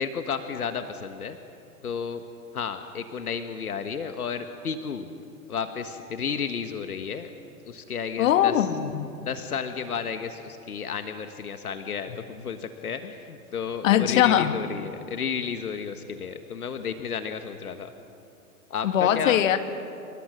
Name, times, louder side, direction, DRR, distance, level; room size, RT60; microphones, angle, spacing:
voice 1, 0.0-1.4 1.8-2.2 2.5-5.1 5.5-7.3 7.6-8.7 9.2-17.9 18.7-19.4, left 6 dB, 80° left, 8 dB, 1.6 m, -32 dB
voice 2, 8.2-9.1 13.8-14.6 18.8-19.6, left 11 dB, 60° left, 9 dB, 1.8 m, -21 dB
28.0 x 25.0 x 6.5 m, 2.6 s
hypercardioid pair, 110°, 43 cm